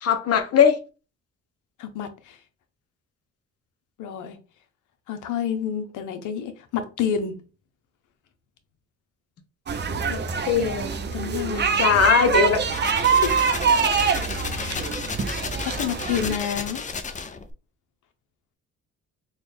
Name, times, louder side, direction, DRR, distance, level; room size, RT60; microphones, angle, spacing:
voice 1, 0.0-0.8 10.1-10.2 10.4-11.0 11.5-12.6, left 7 dB, 55° left, 0.8 m, -20 dB
voice 2, 1.8-2.4 4.0-4.4 5.1-7.4 11.1-11.8 13.2-13.3 14.5-14.9 15.6-16.8, left 8 dB, 85° left, 0.8 m, -29 dB
sound 1, 9.7-16.3, right 6 dB, 35° right, 0.6 m, -24 dB
sound 2, 12.5-17.5, left 4 dB, 25° left, 0.5 m, -33 dB
4.0 x 2.3 x 3.3 m
cardioid pair, 90°, 30 cm